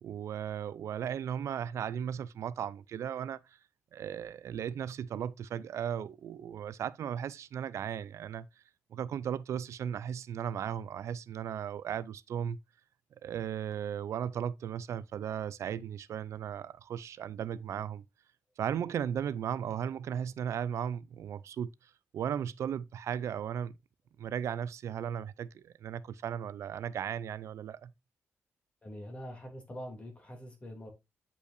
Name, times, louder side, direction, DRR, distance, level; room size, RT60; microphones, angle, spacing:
voice 1, 0.0-3.6 3.9-8.5 8.9-12.6 13.2-18.0 18.6-23.8 24.2-27.9, right 9 dB, 75° right, 0.4 m, -36 dB
voice 2, 28.8-30.9, equal, 25° left, 2.5 m, -44 dB
8.3 x 5.5 x 2.5 m
wide cardioid pair, 145°, 5 cm